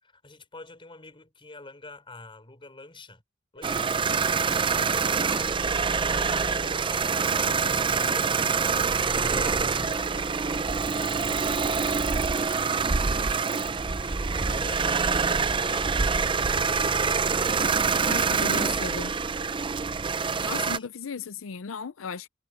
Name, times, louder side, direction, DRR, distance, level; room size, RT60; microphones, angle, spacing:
voice 1, 0.0-3.2 3.5-4.1 4.9-10.4 10.7-13.1 14.0-17.3 18.9-19.1 20.4-20.9, left 2 dB, 25° left, 4.3 m, -48 dB
sound 1, 3.6-12.3, left 2 dB, 50° left, 4.8 m, -51 dB
sound 2, 3.6-20.8, right 5 dB, 25° right, 0.5 m, -25 dB
voice 2, 18.0-19.1 20.4-22.3, left 5 dB, 85° left, 0.5 m, -35 dB
head